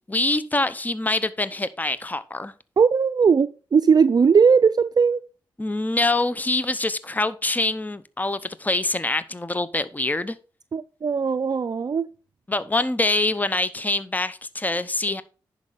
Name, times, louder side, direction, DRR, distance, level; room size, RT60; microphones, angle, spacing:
voice 1, 0.1-2.5 5.6-10.4 12.5-15.2, left 2 dB, 20° left, 0.8 m, -25 dB
voice 2, 2.8-5.2 10.7-12.1, right 6 dB, 45° right, 0.5 m, -19 dB
10.5 x 5.3 x 4.1 m
supercardioid pair, 40°, 9 cm